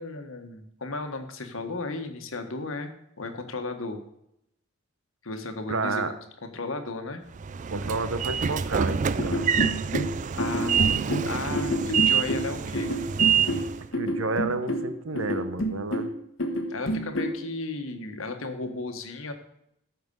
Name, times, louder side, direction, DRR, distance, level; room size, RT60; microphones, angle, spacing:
voice 1, 0.0-2.9 3.2-4.0 5.2-6.0 6.4-7.2 10.4-12.9 16.7-19.3, left 3 dB, 90° left, 6 dB, 1.5 m, -34 dB
voice 2, 5.7-6.1 7.7-9.6 14.0-16.1, right 3 dB, 85° right, 11 dB, 1.0 m, -30 dB
Train / Sliding door, 7.4-13.9, right 7 dB, 40° right, 0.4 m, -26 dB
sound 1, 9.2-17.4, equal, 65° left, 1.5 m, -29 dB
14.0 x 6.0 x 5.4 m, 0.77 s
head